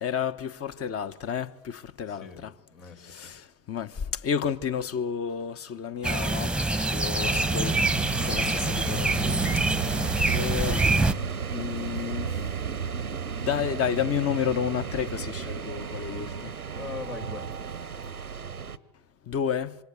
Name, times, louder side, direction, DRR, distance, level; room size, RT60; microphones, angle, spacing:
voice 1, 0.0-2.5 3.0-9.9 10.3-10.9 11.5-12.4 13.4-16.5 19.3-19.8, left 8 dB, 35° left, 1.4 m, -31 dB
voice 2, 2.1-3.3 10.1-10.3 16.8-17.7, left 4 dB, 65° left, 4.7 m, -41 dB
sound 1, 6.0-11.1, right 2 dB, ahead, 1.2 m, -25 dB
sound 2, 7.2-18.8, right 6 dB, 85° right, 1.0 m, -34 dB
27.0 x 26.0 x 8.3 m
figure-of-eight pair, 65°, 43 cm